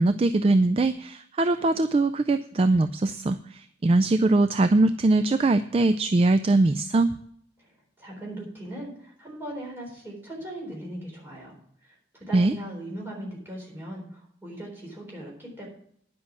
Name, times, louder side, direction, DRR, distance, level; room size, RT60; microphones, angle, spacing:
voice 1, 0.0-7.1 12.3-12.5, right 2 dB, 30° right, 11 dB, 0.3 m, -22 dB
voice 2, 8.0-11.5 11.8-12.0 12.3-15.7, right 1 dB, 10° right, -2 dB, 3.9 m, -39 dB
10.5 x 6.2 x 7.4 m, 0.67 s
head